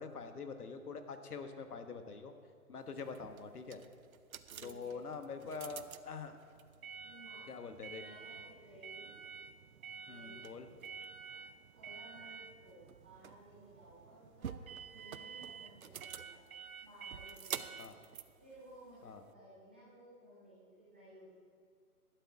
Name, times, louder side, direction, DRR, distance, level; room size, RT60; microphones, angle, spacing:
voice 1, 0.0-2.3 2.7-3.8 4.6-6.4 7.5-8.0 10.1-10.7 17.8-17.9 19.0-19.2, left 5 dB, 75° left, 7 dB, 1.4 m, -45 dB
sound 1, 2.9-19.3, right 7 dB, 65° right, 0.7 m, -49 dB
voice 2, 4.5-5.0 7.0-7.5 7.9-9.1 10.0-10.6 11.3-11.4 11.7-16.4 16.8-17.8 18.4-21.3, right 1 dB, 5° right, -10 dB, 0.8 m, -57 dB
11.5 x 11.5 x 4.8 m, 2.3 s
hypercardioid pair, 170°, 45 cm